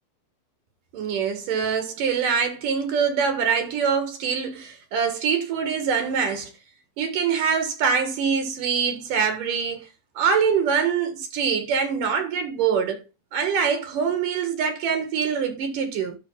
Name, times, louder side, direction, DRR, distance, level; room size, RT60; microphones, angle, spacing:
voice 1, 0.9-6.5 7.0-9.8 10.2-13.0 13.3-16.2, right 6 dB, 70° right, 3.2 m, -24 dB
11.5 x 4.5 x 5.6 m
omnidirectional pair, 4.0 m